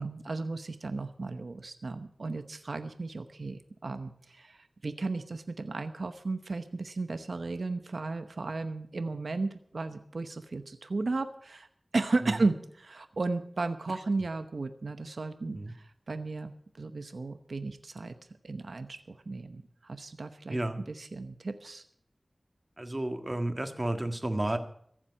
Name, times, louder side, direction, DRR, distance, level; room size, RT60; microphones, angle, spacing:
voice 1, 0.0-11.7 11.9-16.5 16.8-18.2 18.4-20.6 20.9-21.8, right 3 dB, 80° right, 9 dB, 0.9 m, -34 dB
voice 2, 20.5-20.8 22.8-24.6, right 1 dB, 30° right, 7 dB, 1.7 m, -32 dB
15.0 x 7.4 x 8.6 m, 0.66 s
wide cardioid pair, 40°, 0 cm